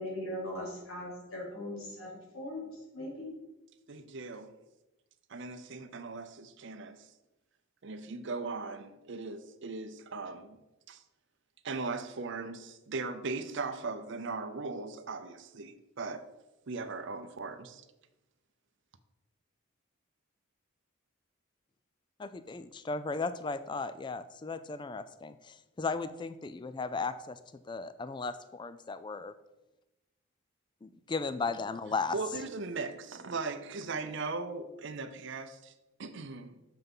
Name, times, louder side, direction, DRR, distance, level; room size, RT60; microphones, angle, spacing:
voice 1, 0.0-3.3, left 1 dB, 75° left, 3.2 m, -40 dB
voice 2, 3.9-4.5 5.3-7.1 7.8-10.6 10.9-11.0 11.6-16.3 16.7-17.8 32.1-35.7 36.0-36.6, right 3 dB, 60° right, 0.6 m, -38 dB
voice 3, 22.2-29.3 30.8-32.2, left 4 dB, 20° left, 0.3 m, -36 dB
6.8 x 5.8 x 5.4 m
head